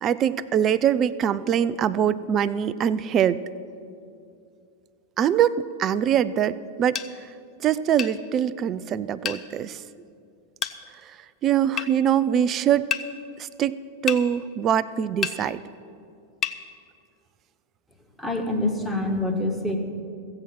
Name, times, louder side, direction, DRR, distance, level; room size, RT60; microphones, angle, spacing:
voice 1, 0.0-3.4 5.2-7.0 7.6-9.8 11.1-11.2 11.4-12.9 13.4-13.8 14.0-15.6, right 9 dB, 30° right, 16 dB, 0.4 m, -23 dB
sound 1, 6.9-7.1 8.0-8.2 9.2-9.4 10.6-10.8 11.8-11.9 12.9-13.1 14.1-14.2 15.2-15.4 16.4-16.6, left 8 dB, 25° left, 0.6 m, -28 dB
voice 2, 18.2-19.8, left 2 dB, ahead, 2 dB, 1.4 m, -26 dB
15.5 x 7.7 x 7.4 m, 2.5 s
figure-of-eight pair, 90°, 0 cm